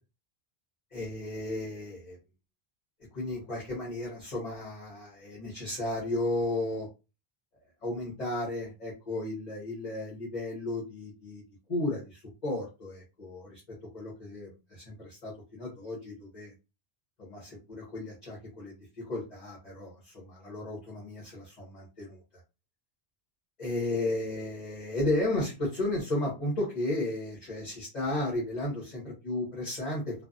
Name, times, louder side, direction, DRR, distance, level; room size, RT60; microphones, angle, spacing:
voice 1, 0.9-2.2 3.1-6.9 7.8-11.4 11.7-13.6 13.9-16.5 17.2-18.7 19.0-22.2 23.6-30.1, left 2 dB, 40° left, -5 dB, 1.3 m, -34 dB
3.2 x 2.2 x 2.5 m, 0.28 s
omnidirectional pair, 1.1 m